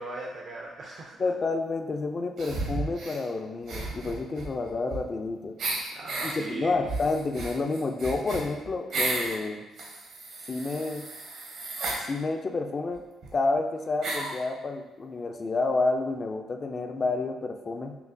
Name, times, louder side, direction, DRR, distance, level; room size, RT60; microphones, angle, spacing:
voice 1, 0.0-1.2 5.9-6.8, right 2 dB, 60° right, -2 dB, 0.5 m, -38 dB
voice 2, 1.2-5.6 6.2-9.7 10.5-11.1 12.1-13.0 13.3-18.0, left 3 dB, 35° left, 5 dB, 0.4 m, -29 dB
sound 1, 2.4-3.2 3.6-5.2 5.6-6.3 6.8-9.4 9.8-12.0 12.9-13.0 13.2-13.3 14.0-14.4, right 2 dB, 75° right, 1.0 m, -33 dB
5.7 x 2.0 x 2.6 m, 1.1 s
cardioid pair, 90°, 0 cm